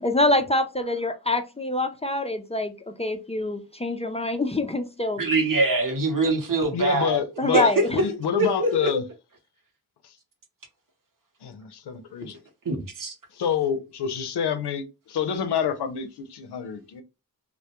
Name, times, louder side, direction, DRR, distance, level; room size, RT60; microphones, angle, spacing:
voice 1, 0.0-5.2 7.4-8.0, left 1 dB, 20° left, 0.3 m, -25 dB
voice 2, 5.2-7.2 7.5-7.8 8.4-8.9 12.7-13.1, right 2 dB, 55° right, 0.8 m, -23 dB
voice 3, 6.7-9.1 10.0-10.1 11.4-12.4 13.3-17.0, left 7 dB, 90° left, 0.6 m, -27 dB
2.2 x 2.1 x 2.8 m
wide cardioid pair, 70°, 38 cm